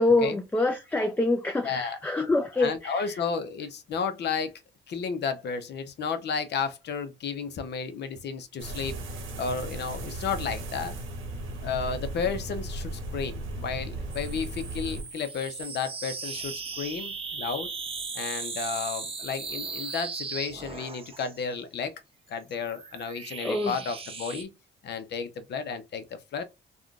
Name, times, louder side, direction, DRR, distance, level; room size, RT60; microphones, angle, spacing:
voice 1, 0.0-3.1 23.4-23.7, left 2 dB, 10° left, 0.4 m, -25 dB
voice 2, 1.6-2.0 2.6-4.5 4.9-9.0 9.4-10.9 11.6-17.7 18.1-22.0 22.3-24.5 24.8-26.4, left 5 dB, 60° left, 0.6 m, -32 dB
sound 1, 8.6-15.0, right 2 dB, 90° right, 0.9 m, -36 dB
sound 2, 14.1-21.4 22.3-24.4, right 4 dB, 30° right, 0.6 m, -37 dB
3.5 x 2.2 x 2.4 m
cardioid pair, 90°, 20 cm